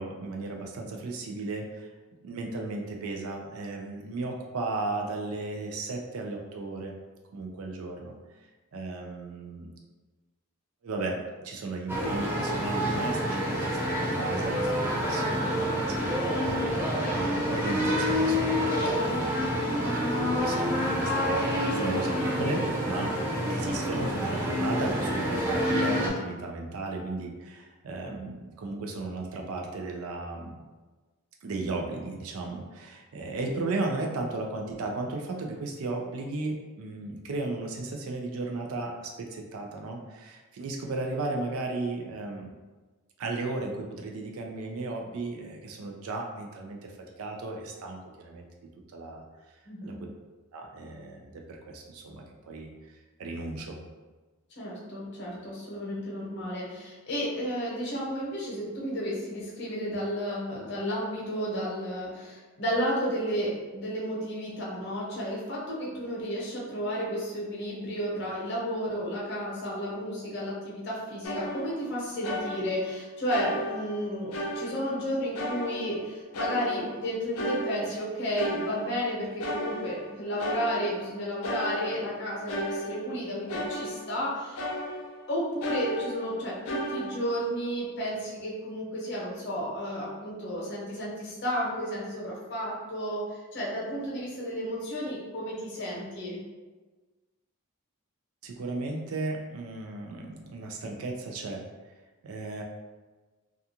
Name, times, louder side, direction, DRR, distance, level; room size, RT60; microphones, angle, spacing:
voice 1, 0.0-1.9 2.2-6.9 7.3-8.1 8.7-9.7 10.8-20.0 20.4-23.1 23.5-30.6 31.4-42.5 43.2-46.9 47.2-48.4 48.9-49.2 49.8-50.1 50.5-52.7 53.2-53.8 98.4-101.6 102.2-102.6, right 2 dB, 80° right, 1 dB, 0.4 m, -35 dB
sound 1, 11.9-26.1, equal, 10° right, 0.3 m, -27 dB
voice 2, 49.6-50.0 54.6-84.6 85.3-96.4, equal, 50° left, -5 dB, 0.8 m, -32 dB
sound 2, 71.2-72.0 72.2-73.0 73.3-75.0 75.3-76.1 76.3-79.1 79.4-81.1 81.4-84.3 84.6-85.3 85.6-87.3, equal, 85° left, 0.5 m, -35 dB
2.4 x 2.3 x 2.7 m, 1.3 s
head